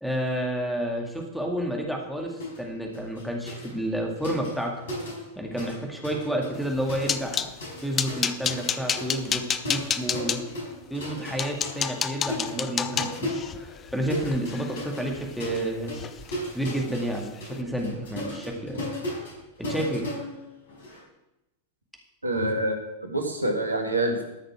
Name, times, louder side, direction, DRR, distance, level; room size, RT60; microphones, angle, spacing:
voice 1, 0.0-4.7 5.4-7.5 7.8-10.4 10.9-15.9 16.5-18.9 19.6-20.1, right 1 dB, ahead, 0 dB, 2.1 m, -30 dB
sound 1, 2.4-2.6 2.9-5.8 6.0-21.0, left 1 dB, 60° left, 4.9 m, -37 dB
sound 2, 6.6-7.5 8.0-10.4 11.0-11.1 11.4-15.6 15.9-16.4 16.6-16.8 17.2-17.4, left 7 dB, 25° left, 0.6 m, -30 dB
voice 2, 22.2-24.2, right 1 dB, 80° right, 4 dB, 1.8 m, -26 dB
13.5 x 6.5 x 6.2 m, 0.93 s
figure-of-eight pair, 90°, 0 cm